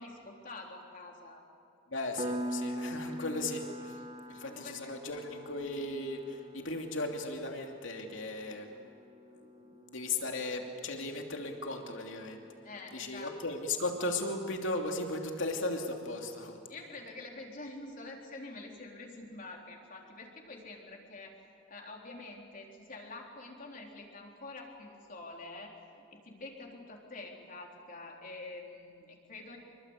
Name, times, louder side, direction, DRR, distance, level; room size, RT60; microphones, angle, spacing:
voice 1, 0.0-1.4 4.2-4.9 12.6-13.3 16.7-21.3 21.7-29.6, left 2 dB, 45° left, 0 dB, 3.9 m, -47 dB
voice 2, 1.9-4.0 4.3-8.8 9.6-12.4 12.9-16.6, left 2 dB, 75° left, 2 dB, 2.8 m, -36 dB
Piano, 2.2-12.6, equal, 30° right, 1.4 m, -43 dB
26.5 x 23.5 x 8.3 m, 2.6 s
head